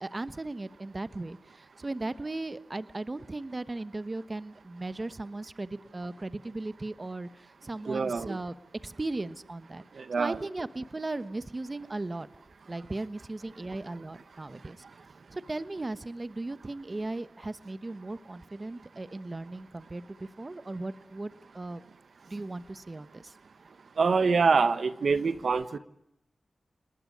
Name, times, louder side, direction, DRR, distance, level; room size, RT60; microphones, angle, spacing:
voice 1, 0.0-8.5 8.8-9.8 10.2-12.3 12.7-14.8 15.3-21.8 22.3-23.3, right 2 dB, 35° right, 13 dB, 1.2 m, -37 dB
voice 2, 7.9-8.4 9.9-10.5 24.0-25.8, right 4 dB, 70° right, 12 dB, 1.3 m, -25 dB
29.5 x 20.0 x 10.0 m, 0.83 s
wide cardioid pair, 75°, 0 cm